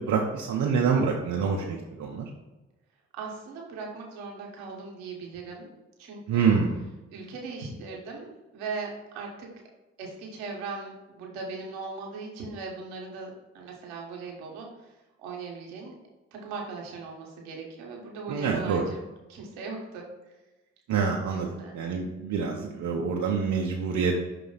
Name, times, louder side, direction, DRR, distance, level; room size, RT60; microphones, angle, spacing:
voice 1, 0.0-2.3 6.3-6.8 18.3-18.8 20.9-21.5 21.7-24.2, right 5 dB, 75° right, -1 dB, 0.8 m, -26 dB
voice 2, 3.1-5.7 6.0-6.5 7.1-9.5 10.0-14.9 15.2-15.9 16.3-20.1 21.2-21.8, right 4 dB, 90° right, -1 dB, 1.1 m, -39 dB
5.8 x 3.1 x 5.5 m, 1.1 s
hypercardioid pair, 40°, 30 cm